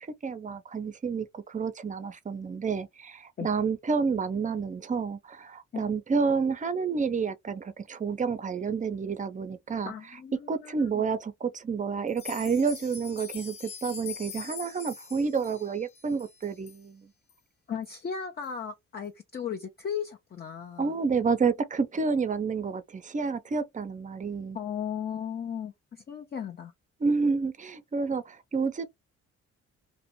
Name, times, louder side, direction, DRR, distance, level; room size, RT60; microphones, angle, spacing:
voice 1, 0.2-9.9 10.5-17.1 20.8-24.6 27.0-28.8, right 5 dB, 25° right, 0.5 m, -29 dB
voice 2, 9.9-11.1 17.7-20.9 24.5-26.7, left 7 dB, 35° left, 0.5 m, -36 dB
sound 1, 12.1-16.8 17.3-17.4 17.8-17.9 18.4-18.5, left 6 dB, 85° left, 0.9 m, -43 dB
2.5 x 2.1 x 2.8 m
cardioid pair, 90°, 30 cm